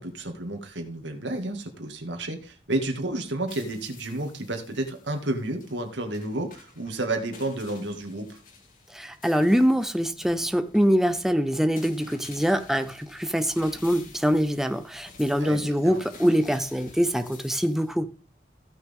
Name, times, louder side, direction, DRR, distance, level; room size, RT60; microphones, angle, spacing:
voice 1, 0.0-8.4 15.4-16.0, right 2 dB, 90° right, 2.2 m, -31 dB
sound 1, 3.2-17.9, left 4 dB, 45° left, 2.4 m, -51 dB
voice 2, 8.9-18.1, equal, ahead, 0.5 m, -24 dB
16.0 x 6.2 x 3.6 m
head